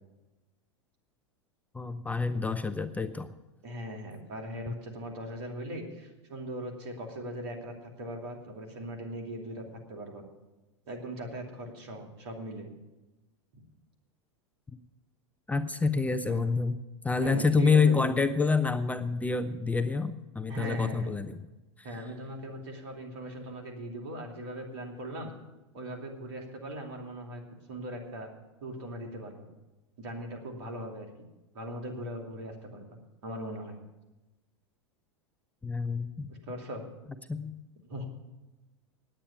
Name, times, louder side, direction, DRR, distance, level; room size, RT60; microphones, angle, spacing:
voice 1, 1.7-3.3 15.5-16.8 17.0-21.4 35.6-36.3 37.3-37.6, left 4 dB, 10° left, 9 dB, 0.6 m, -27 dB
voice 2, 3.6-9.6 9.9-10.2 10.9-12.7 13.5-13.6 16.3-16.5 17.2-18.1 20.5-21.1 21.8-25.3 25.7-27.4 27.7-28.3 28.6-29.5 30.0-31.1 31.5-32.8 33.2-33.8 36.3-36.8 37.9-38.0, right 1 dB, 65° right, 2 dB, 2.9 m, -39 dB
9.8 x 8.9 x 9.4 m, 1.1 s
hypercardioid pair, 95°, 15 cm